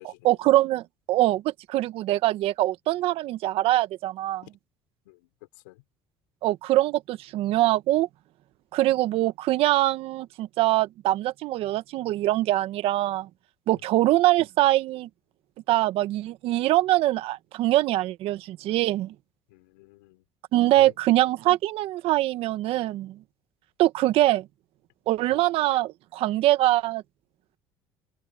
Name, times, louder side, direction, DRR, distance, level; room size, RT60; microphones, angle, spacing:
voice 1, 0.2-4.4 6.4-8.1 8.7-13.3 13.7-15.1 15.7-19.1 20.5-23.2 23.8-24.5 25.1-27.0, right 16 dB, 65° right, 1.5 m, -23 dB
voice 2, 5.0-5.8 13.7-14.0 19.5-20.2 20.8-20.9 25.3-25.5, left 23 dB, 90° left, 5.6 m, -50 dB
supercardioid pair, 80°, 10 cm